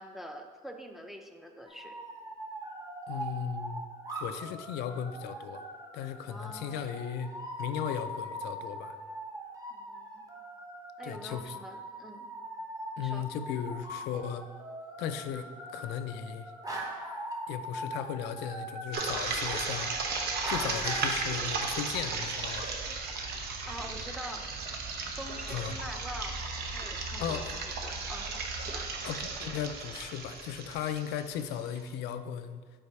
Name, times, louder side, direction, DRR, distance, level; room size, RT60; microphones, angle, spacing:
voice 1, 0.0-2.0 6.3-6.9 9.7-10.2 11.0-12.3 13.0-13.3 23.7-24.5 25.2-26.4 26.7-28.9, equal, ahead, 4 dB, 0.5 m, -45 dB
sound 1, 1.7-21.0, right 1 dB, 20° right, 0.9 m, -41 dB
voice 2, 3.1-3.8 4.2-5.6 5.9-9.0 11.0-11.6 13.0-14.4 15.0-16.5 17.5-20.1 20.4-22.7 25.5-25.7 27.2-27.6 29.0-32.6, left 8 dB, 85° left, 10 dB, 0.4 m, -36 dB
sound 2, 18.9-31.8, right 4 dB, 70° right, 0.8 m, -35 dB
5.5 x 4.2 x 4.7 m, 1.5 s
cardioid pair, 110°, 17 cm